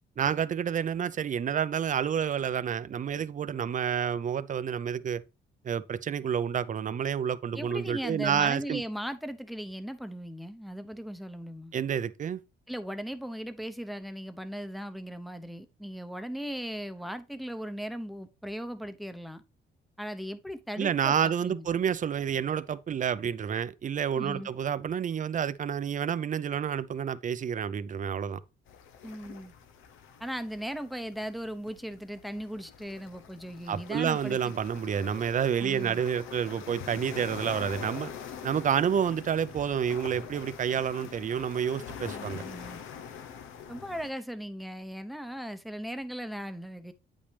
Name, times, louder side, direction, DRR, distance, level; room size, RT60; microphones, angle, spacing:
voice 1, 0.2-5.2 5.6-8.8 11.7-12.4 20.8-28.4 33.7-38.1 38.4-42.4, right 8 dB, 40° right, 0.6 m, -29 dB
voice 2, 7.5-11.7 12.7-19.4 20.0-21.7 24.1-24.5 29.0-29.5 30.2-34.5 35.6-36.0 42.1-42.8 43.7-46.9, equal, ahead, 0.8 m, -38 dB
sound 1, 28.7-44.1, left 7 dB, 90° left, 0.9 m, -44 dB
8.5 x 5.3 x 3.3 m
cardioid pair, 90°, 20 cm